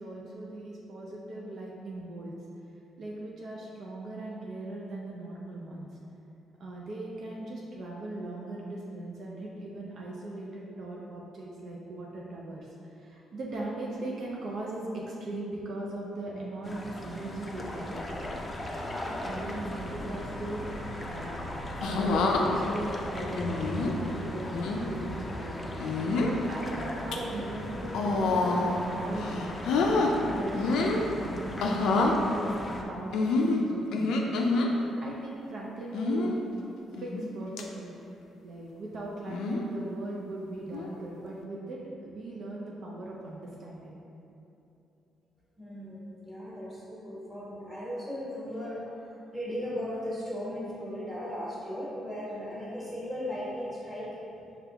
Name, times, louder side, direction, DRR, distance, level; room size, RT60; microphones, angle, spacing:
voice 1, 0.0-2.3 3.0-5.9 6.6-12.7 13.0-18.1 19.2-21.4 21.9-25.6 26.1-29.6 29.8-34.3 34.6-34.7 35.0-36.3 37.0-37.9 38.4-44.0, right 2 dB, 60° right, -4 dB, 0.5 m, -39 dB
sound 1, 16.6-32.8, left 1 dB, 25° left, 0.4 m, -38 dB
sound 2, 21.8-22.4 23.4-23.9 24.5-24.8 25.8-26.4 26.9-27.2 27.9-28.8 29.2-30.1 30.5-31.0 31.6-32.2 33.1-34.7 35.9-36.3 37.0-37.3 37.6-37.7 39.3-39.7 40.7-41.0, left 3 dB, 80° left, 0.4 m, -27 dB
sound 3, 22.2-23.2 24.9-25.8 27.1-27.8, equal, 35° right, 1.0 m, -45 dB
voice 2, 45.6-54.2, equal, 10° right, -8 dB, 1.4 m, -37 dB
5.2 x 2.3 x 3.4 m, 2.8 s
cardioid pair, 90°, 0 cm